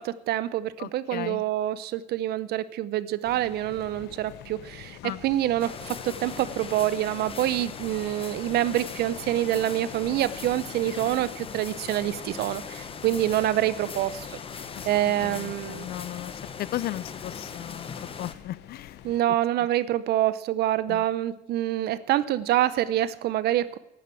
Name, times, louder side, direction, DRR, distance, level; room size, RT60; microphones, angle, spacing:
voice 1, 0.0-14.4 14.8-15.9 19.0-23.8, right 13 dB, 70° right, 17 dB, 0.7 m, -26 dB
voice 2, 0.8-1.4 5.0-5.2 14.7-14.9 15.2-16.3 16.6-19.0 20.9-21.0, left 14 dB, 65° left, 20 dB, 0.5 m, -36 dB
sound 1, 3.2-19.2, left 11 dB, 80° left, 1.1 m, -46 dB
sound 2, 5.6-18.3, left 6 dB, 35° left, 1.1 m, -40 dB
12.0 x 9.4 x 8.4 m, 0.90 s
cardioid pair, 110°, 17 cm